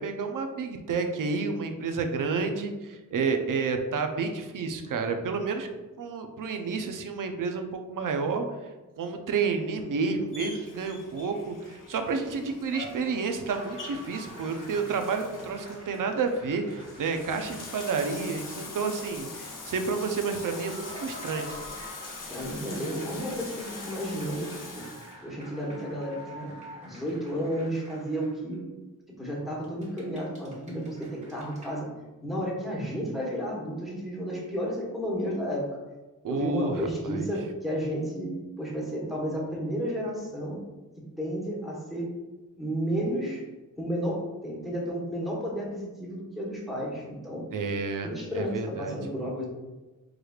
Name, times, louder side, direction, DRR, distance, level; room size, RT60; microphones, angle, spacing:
voice 1, 0.0-5.7 6.0-8.5 9.0-21.5 36.2-37.3 47.5-48.1 48.3-49.0, right 4 dB, 75° right, 6 dB, 0.5 m, -30 dB
Bathtub (filling or washing), 10.3-25.1, left 3 dB, 70° left, 0.8 m, -43 dB
sound 1, 13.5-18.6 18.9-19.0 19.9-28.6 29.6-31.8, equal, 20° right, 1.2 m, -47 dB
voice 2, 22.3-24.9 25.2-28.6 29.2-31.9 32.2-35.7 36.3-40.6 41.0-42.1 42.6-43.4 43.8-47.4 48.0-49.4, equal, ahead, -5 dB, 1.1 m, -32 dB
4.8 x 3.2 x 2.3 m, 1.1 s
wide cardioid pair, 120°, 33 cm